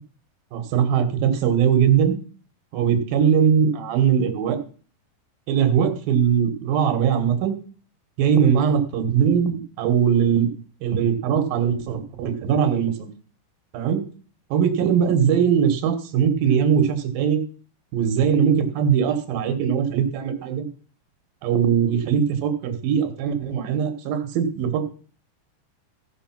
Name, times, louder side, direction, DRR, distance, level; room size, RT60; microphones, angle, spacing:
voice 1, 0.5-2.2 2.7-4.6 5.5-7.5 8.2-10.5 10.8-13.1 13.7-14.0 14.5-17.4 17.9-20.6 21.4-24.8, right 8 dB, 65° right, 7 dB, 2.9 m, -20 dB
14.5 x 6.8 x 5.9 m, 0.40 s
omnidirectional pair, 4.9 m